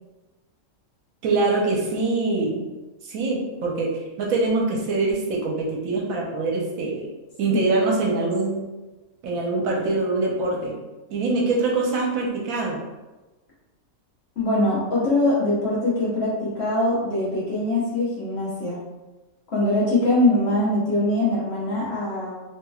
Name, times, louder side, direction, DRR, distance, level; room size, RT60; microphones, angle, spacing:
voice 1, 1.2-2.7 3.0-3.9 4.2-7.1 7.4-8.6 9.2-10.7 11.1-12.8, right 3 dB, 75° right, -1 dB, 1.0 m, -24 dB
voice 2, 14.4-18.8 19.5-22.3, left 1 dB, 50° left, -7 dB, 1.1 m, -22 dB
3.0 x 2.9 x 2.3 m, 1.1 s
omnidirectional pair, 1.5 m